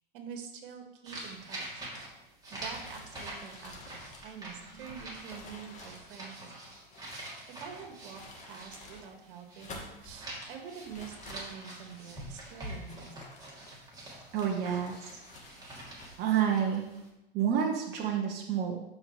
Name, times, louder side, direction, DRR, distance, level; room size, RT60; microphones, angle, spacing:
voice 1, 0.1-1.9 2.5-6.5 7.5-8.2 8.5-13.3, right 7 dB, 65° right, 4 dB, 1.8 m, -46 dB
sound 1, 1.0-9.8 10.1-17.1, right 1 dB, 15° right, 2.9 m, -45 dB
sound 2, 2.6-7.3 7.9-9.1 9.4-10.2 10.8-12.0 12.6-13.9 14.4-16.3, left 2 dB, 25° left, 1.9 m, -51 dB
voice 2, 14.3-15.2 16.2-16.8 17.3-18.8, right 8 dB, 35° right, 1 dB, 1.0 m, -29 dB
12.5 x 5.3 x 3.3 m, 0.94 s
hypercardioid pair, 115°, 29 cm